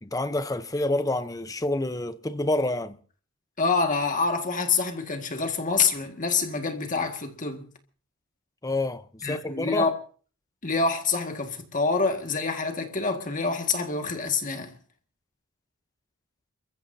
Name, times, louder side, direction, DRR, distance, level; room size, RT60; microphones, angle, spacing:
voice 1, 0.0-3.0 8.6-9.9, left 2 dB, 15° left, 0.8 m, -28 dB
voice 2, 3.6-7.7 9.2-10.0 10.6-14.8, left 4 dB, 35° left, 2.0 m, -26 dB
29.0 x 15.0 x 2.8 m
head